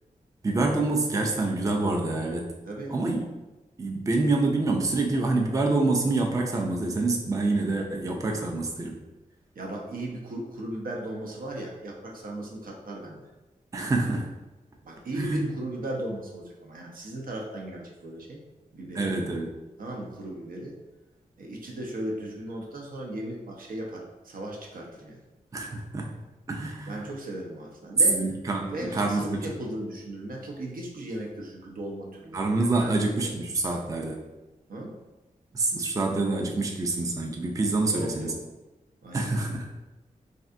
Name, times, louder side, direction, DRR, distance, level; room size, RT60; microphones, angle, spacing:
voice 1, 0.4-2.5 2.9-3.2 3.8-9.0 13.7-14.3 15.2-15.5 18.9-19.5 25.5-26.1 26.5-27.1 28.1-29.5 32.3-34.2 35.5-38.3 39.1-39.7, right 2 dB, 20° right, 1 dB, 0.4 m, -26 dB
voice 2, 2.7-3.0 9.6-13.2 14.8-18.4 18.7-19.2 19.8-20.8 21.4-25.2 26.8-28.2 28.7-32.4 32.8-33.5 34.7-35.0 37.9-38.4 39.0-39.3, right 1 dB, 70° right, -1 dB, 0.6 m, -36 dB
3.3 x 2.5 x 2.5 m, 1.1 s
cardioid pair, 75°, 15 cm